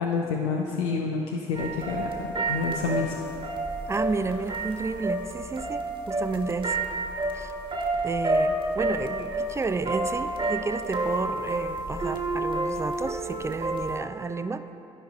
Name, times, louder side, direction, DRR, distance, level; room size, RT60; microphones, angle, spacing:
voice 1, 0.0-3.1, left 4 dB, 80° left, 0 dB, 0.5 m, -28 dB
sound 1, 1.6-14.0, right 2 dB, 35° right, 1.3 m, -30 dB
voice 2, 3.9-6.9 7.3-7.5 8.0-14.6, right 4 dB, 20° right, 10 dB, 0.3 m, -31 dB
14.0 x 5.1 x 2.3 m, 2.9 s
hypercardioid pair, 50°, 14 cm